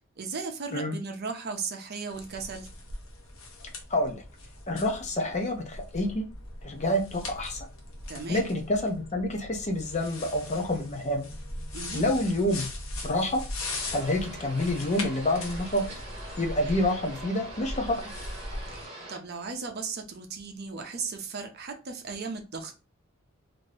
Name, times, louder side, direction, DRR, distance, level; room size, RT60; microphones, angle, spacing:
voice 1, 0.2-2.7 8.1-8.5 11.7-12.1 18.7-22.8, right 4 dB, 50° right, 4 dB, 0.6 m, -36 dB
sound 1, 2.1-18.9, left 2 dB, 70° left, 0.8 m, -40 dB
voice 2, 3.9-4.2 4.7-6.2 6.6-7.7 8.3-11.3 11.9-12.7 13.0-13.4 13.9-15.8 16.4-18.0, left 1 dB, 35° left, 3 dB, 0.6 m, -28 dB
sound 2, 13.6-19.2, right 1 dB, 30° right, 1.1 m, -43 dB
2.8 x 2.6 x 3.2 m, 0.32 s
head